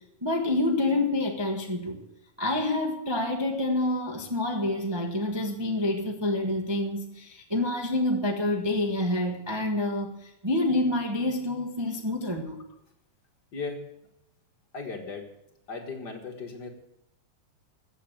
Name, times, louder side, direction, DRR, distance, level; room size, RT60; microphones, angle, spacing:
voice 1, 0.2-2.0 2.4-12.6, left 2 dB, 20° right, 2 dB, 0.6 m, -27 dB
voice 2, 13.5-13.8 14.7-15.3 15.7-16.7, left 4 dB, 40° left, 4 dB, 1.7 m, -36 dB
14.5 x 8.1 x 8.8 m, 0.85 s
omnidirectional pair, 3.4 m